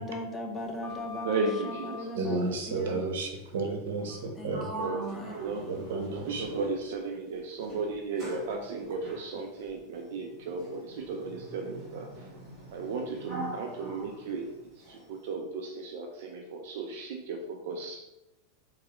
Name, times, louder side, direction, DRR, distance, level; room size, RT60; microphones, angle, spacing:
voice 1, 0.0-1.3 1.6-2.4 2.7-3.0 4.4-5.3, left 1 dB, 10° left, 1 dB, 0.5 m, -38 dB
Sliding door, 0.6-2.2 4.0-4.2 4.5-7.0 7.6-15.1, right 1 dB, 30° right, 1.4 m, -43 dB
voice 2, 1.2-2.4 4.8-5.9 6.3-12.3 12.7-18.0, right 3 dB, 60° right, 2 dB, 0.4 m, -35 dB
voice 3, 2.2-4.7 5.7-6.7, right 3 dB, 90° right, 3 dB, 0.8 m, -32 dB
3.6 x 3.1 x 2.9 m, 0.92 s
supercardioid pair, 165°, 0 cm